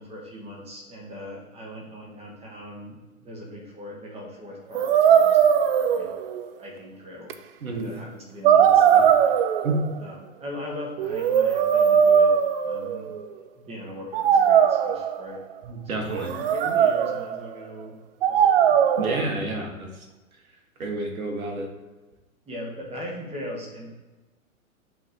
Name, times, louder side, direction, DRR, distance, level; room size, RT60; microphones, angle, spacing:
voice 1, 0.0-6.1 6.6-7.3 7.6-9.5 10.0-13.1 13.6-15.5 15.8-18.0 18.3-18.8 22.5-23.9, left 1 dB, 15° right, -1 dB, 1.6 m, -40 dB
sound 1, 4.7-6.5 7.3-7.4 8.4-10.0 11.0-13.2 14.1-15.4 16.1-17.4 18.2-19.2, right 8 dB, 45° right, 0.5 m, -19 dB
voice 2, 7.6-7.9 9.6-9.8 15.6-16.3 19.0-19.9 20.8-21.7, right 2 dB, 80° right, 2 dB, 1.7 m, -29 dB
6.3 x 3.7 x 4.5 m, 1.2 s
hypercardioid pair, 120°, 42 cm